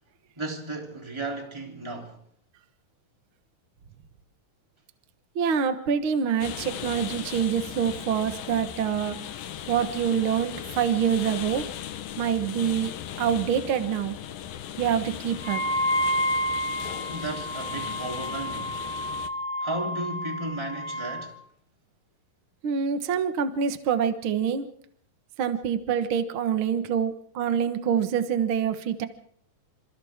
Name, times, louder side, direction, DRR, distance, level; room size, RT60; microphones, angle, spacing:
voice 1, 0.4-2.2 17.1-18.8 19.6-21.4, right 2 dB, 10° right, 3.1 m, -34 dB
voice 2, 5.3-9.2 9.7-11.6 12.2-12.9 13.2-14.1 14.8-15.6 22.6-24.6 25.4-29.1, right 8 dB, 55° right, 1.5 m, -26 dB
sound 1, 6.4-19.3, left 10 dB, 80° left, 2.9 m, -38 dB
Wind instrument woodwind instrument, 15.4-21.3, equal, 25° right, 3.4 m, -30 dB
27.0 x 27.0 x 3.7 m
omnidirectional pair, 4.1 m